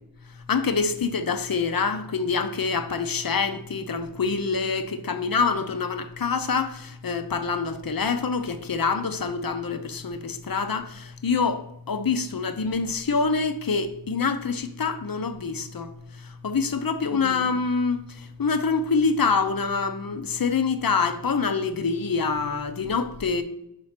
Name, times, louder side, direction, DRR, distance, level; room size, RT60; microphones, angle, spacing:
voice 1, 0.5-23.4, left 5 dB, 50° left, 0.7 m, -26 dB
5.5 x 4.4 x 5.7 m
wide cardioid pair, 40°, 44 cm